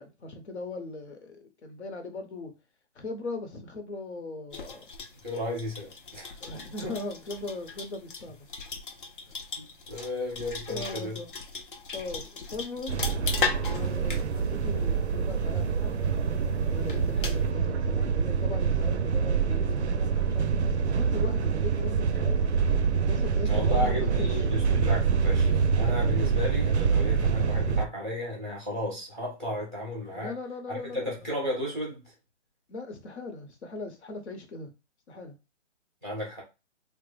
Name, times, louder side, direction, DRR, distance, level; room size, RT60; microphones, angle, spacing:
voice 1, 0.0-2.5 2.9-4.8 6.4-8.5 10.7-11.3 11.9-13.0 13.6-16.0 16.7-22.5 23.0-24.6 30.1-31.3 32.7-34.7 35.1-35.3, left 3 dB, 60° left, 1.1 m, -39 dB
sound 1, 4.5-17.5, left 4 dB, 45° left, 0.6 m, -38 dB
voice 2, 5.2-6.3 6.8-6.9 9.6-11.2 23.4-30.3 30.7-32.1 36.0-36.4, left 1 dB, 5° left, 0.6 m, -34 dB
sound 2, 12.9-27.9, right 6 dB, 65° right, 0.5 m, -26 dB
3.3 x 2.2 x 3.2 m
hypercardioid pair, 165°, 37 cm